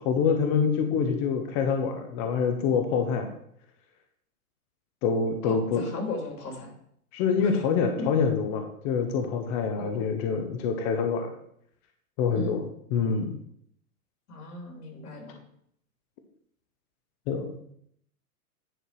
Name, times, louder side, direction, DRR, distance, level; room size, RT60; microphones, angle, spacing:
voice 1, 0.1-3.3 5.0-5.8 7.1-11.3 12.2-12.6 12.9-13.3 17.3-17.5, left 6 dB, 25° left, 5 dB, 0.6 m, -26 dB
voice 2, 5.4-6.7 7.4-7.6 9.8-10.1 12.3-12.6 14.3-15.4, left 3 dB, 85° left, 1 dB, 3.3 m, -37 dB
10.0 x 4.6 x 4.6 m, 0.68 s
hypercardioid pair, 150°, 45 cm